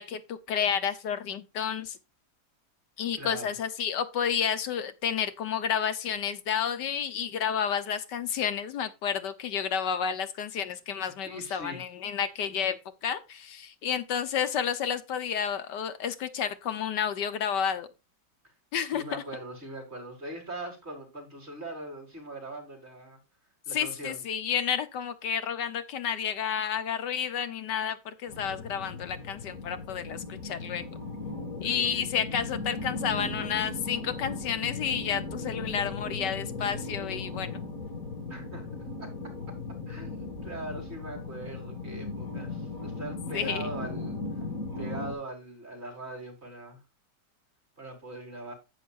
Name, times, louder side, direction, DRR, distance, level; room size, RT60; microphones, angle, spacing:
voice 1, 0.0-2.0 3.0-17.9 18.7-19.0 23.7-30.9 31.6-37.6 43.3-43.7, left 8 dB, 75° left, 1.6 m, -31 dB
voice 2, 3.1-3.5 11.2-11.8 18.8-23.2 23.7-24.2 31.6-32.0 38.3-38.7 39.0-39.1 39.9-44.2 44.8-46.8 47.8-48.5, right 2 dB, 35° right, 4.5 m, -41 dB
sound 1, 28.3-45.1, left 3 dB, 50° left, 2.5 m, -37 dB
10.5 x 9.1 x 2.5 m
omnidirectional pair, 1.9 m